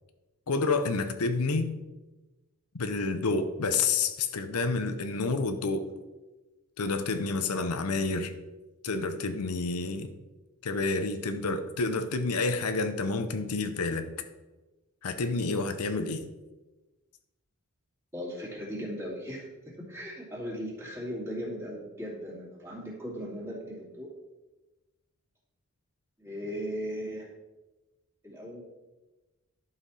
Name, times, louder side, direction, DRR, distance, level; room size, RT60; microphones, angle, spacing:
voice 1, 0.5-1.7 2.7-5.9 6.8-8.3 8.8-10.1 10.6-14.1 15.0-16.2, left 3 dB, 90° left, 8 dB, 0.8 m, -29 dB
voice 2, 18.1-24.1 26.2-27.3 28.2-28.6, equal, 10° right, -5 dB, 2.4 m, -37 dB
11.0 x 5.7 x 4.2 m, 1.1 s
head